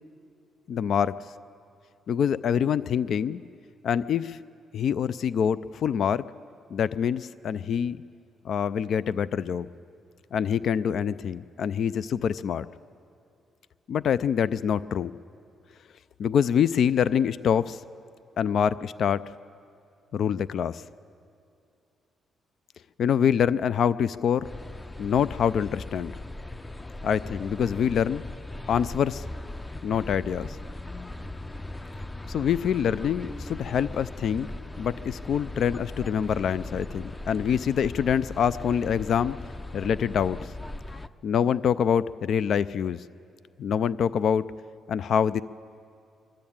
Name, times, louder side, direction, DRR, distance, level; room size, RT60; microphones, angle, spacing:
voice 1, 0.7-1.1 2.1-3.4 3.8-4.4 4.7-6.2 6.7-8.0 8.4-9.7 10.3-12.7 13.9-15.1 16.2-17.8 18.4-19.2 20.1-20.8 23.0-24.5 25.0-26.1 27.0-28.2 28.7-29.3 29.8-30.6 32.3-34.5 34.8-39.4 39.7-40.4 41.2-43.0 43.6-44.5 44.9-45.4, left 8 dB, 65° left, 17 dB, 0.4 m, -25 dB
sound 1, 24.4-41.1, left 2 dB, 15° left, 0.6 m, -39 dB
24.5 x 12.5 x 8.7 m, 2.5 s
cardioid pair, 90°, 0 cm